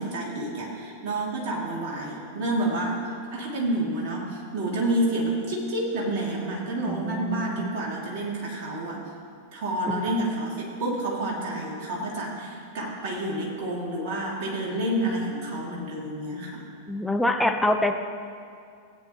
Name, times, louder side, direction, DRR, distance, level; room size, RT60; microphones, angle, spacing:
voice 1, 0.0-3.0 3.3-9.0 9.5-16.6, right 1 dB, 45° right, -3 dB, 2.5 m, -29 dB
voice 2, 6.8-7.7 10.2-10.3 16.9-18.0, left 1 dB, 5° left, 4 dB, 0.7 m, -25 dB
16.5 x 8.6 x 3.0 m, 2.3 s
figure-of-eight pair, 90°, 0 cm